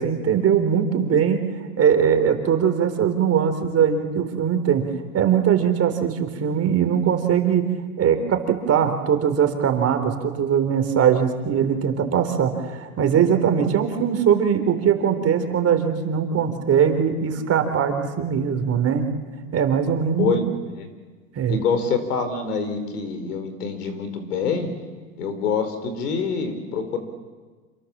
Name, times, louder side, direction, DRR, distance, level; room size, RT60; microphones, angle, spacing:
voice 1, 0.0-1.4 1.8-4.9 5.1-7.7 8.0-19.1 19.5-20.3 21.4-21.6, right 8 dB, 35° right, 7 dB, 3.7 m, -21 dB
voice 2, 20.2-20.9 21.5-24.7 25.2-27.0, left 5 dB, 85° left, 9 dB, 4.9 m, -26 dB
27.5 x 26.5 x 7.5 m, 1.4 s
hypercardioid pair, 110°, 45 cm